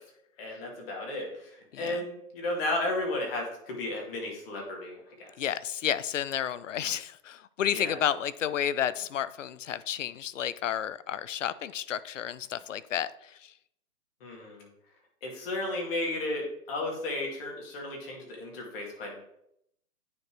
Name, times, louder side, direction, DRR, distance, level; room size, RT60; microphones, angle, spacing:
voice 1, 0.4-5.3 7.7-8.0 14.2-14.7 15.2-19.2, left 2 dB, 35° left, -1 dB, 2.4 m, -34 dB
voice 2, 1.7-2.0 5.4-13.5, left 10 dB, 55° left, 17 dB, 0.5 m, -31 dB
9.5 x 4.4 x 3.2 m, 0.74 s
hypercardioid pair, 160°, 47 cm